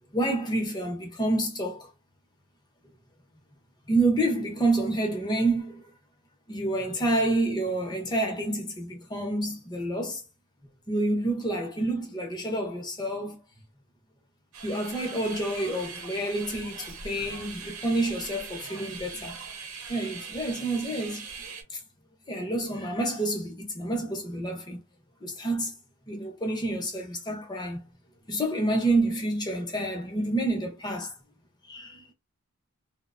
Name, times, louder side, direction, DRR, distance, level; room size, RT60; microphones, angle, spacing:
voice 1, 0.1-1.9 3.9-5.9 6.5-10.2 10.9-13.4 14.6-19.4 19.9-21.3 21.7-21.8 22.3-24.8 25.2-25.7 26.1-27.8 28.3-31.1 31.7-32.0, right 2 dB, 20° left, 0.6 m, -28 dB
sound 1, 14.5-21.6, right 5 dB, 85° right, 0.8 m, -41 dB
2.9 x 2.0 x 2.4 m
head